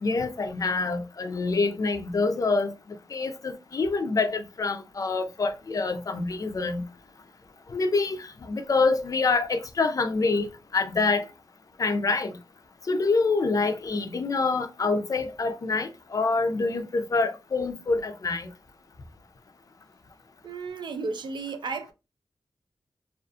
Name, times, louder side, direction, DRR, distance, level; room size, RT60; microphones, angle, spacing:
voice 1, 0.0-2.7 3.1-6.8 7.7-11.3 11.8-12.3 12.9-18.5, left 3 dB, 45° left, 0.4 m, -26 dB
voice 2, 20.4-21.9, right 4 dB, 75° right, 0.4 m, -33 dB
2.4 x 2.4 x 2.3 m
wide cardioid pair, 110°, 8 cm